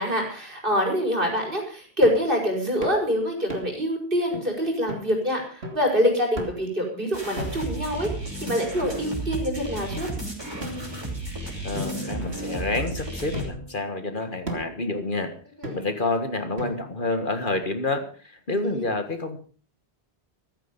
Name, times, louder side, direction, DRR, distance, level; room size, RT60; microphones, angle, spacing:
voice 1, 0.0-8.1 8.4-10.1 15.6-15.8 18.5-18.8, equal, 55° right, 1 dB, 5.4 m, -25 dB
sound 1, 2.0-2.3 2.8-3.0 3.5-3.9 4.3-4.4 4.9-5.1 5.6-5.9 6.4-6.7 7.4-7.8 8.5-9.2 9.9-10.0 10.6-11.3 11.7-12.8 13.3-13.8 14.5-14.8 15.6-16.1 16.6-17.1, equal, 75° right, 3.2 m, -37 dB
sound 2, 7.1-13.5, right 2 dB, 25° right, 5.2 m, -33 dB
voice 2, 11.6-15.3 15.7-19.4, left 2 dB, 50° left, 8 dB, 1.9 m, -28 dB
14.5 x 14.5 x 5.3 m, 0.40 s
omnidirectional pair, 1.1 m